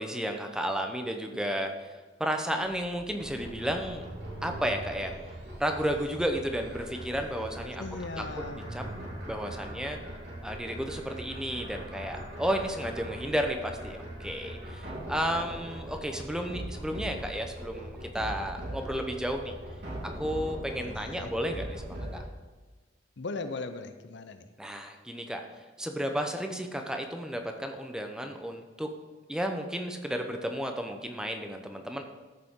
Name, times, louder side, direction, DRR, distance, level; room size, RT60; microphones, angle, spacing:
voice 1, 0.0-1.7 2.2-4.0 4.4-5.1 5.6-7.8 8.2-8.3 8.6-8.8 9.3-10.0 10.4-19.5 20.2-22.2 24.6-25.4 25.8-28.9 29.3-32.0, equal, 5° right, 4 dB, 0.8 m, -32 dB
sound 1, 2.6-22.2, right 1 dB, 60° right, 3.3 m, -41 dB
sound 2, 3.6-6.0 8.1-9.9, right 1 dB, 85° right, 1.5 m, -45 dB
voice 2, 7.8-8.7 20.8-21.3 23.2-24.5, left 3 dB, 65° left, 9 dB, 0.7 m, -38 dB
14.0 x 6.7 x 3.7 m, 1.3 s
head